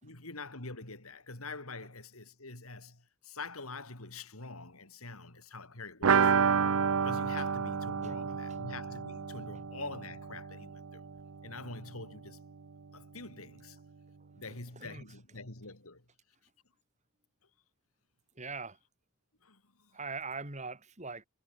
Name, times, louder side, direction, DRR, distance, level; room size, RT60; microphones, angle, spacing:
voice 1, 0.0-6.3 7.0-11.1 11.4-12.4 12.9-13.8 14.4-16.0 19.4-20.0, left 3 dB, 85° left, 4.4 m, -45 dB
sound 1, 6.0-11.6 11.9-12.0 12.3-12.4, right 6 dB, 80° right, 0.7 m, -30 dB
voice 2, 8.0-8.4 14.8-15.0 18.4-18.8 19.9-21.2, right 4 dB, 35° right, 4.5 m, -42 dB
head